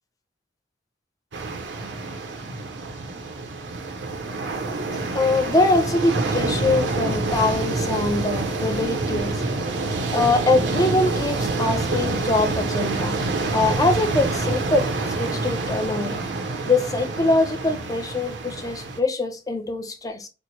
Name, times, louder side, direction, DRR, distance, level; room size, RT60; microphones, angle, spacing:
sound 1, 1.3-19.0, right 3 dB, 70° right, 0.7 m, -27 dB
voice 1, 5.1-9.4 9.8-13.2 13.5-14.9 15.2-16.2 16.7-20.3, left 2 dB, 20° left, 0.5 m, -23 dB
4.4 x 2.0 x 2.7 m
head